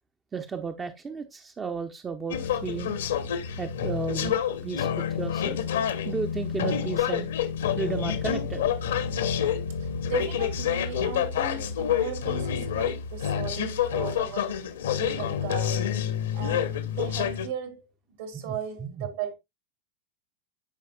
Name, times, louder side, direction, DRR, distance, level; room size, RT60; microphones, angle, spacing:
voice 1, 0.3-2.9 3.6-5.6 6.1-7.3 7.7-8.7 18.4-18.5 18.8-19.0, right 5 dB, 20° right, 0.8 m, -34 dB
sound 1, 2.3-17.5, left 9 dB, 65° left, 1.1 m, -28 dB
sound 2, 5.9-6.1 7.0-15.0, left 2 dB, 80° left, 0.5 m, -38 dB
voice 2, 9.8-14.7 14.9-16.0 16.3-19.3, right 7 dB, 60° right, 2.6 m, -37 dB
13.0 x 5.0 x 2.3 m
figure-of-eight pair, 85°, 0 cm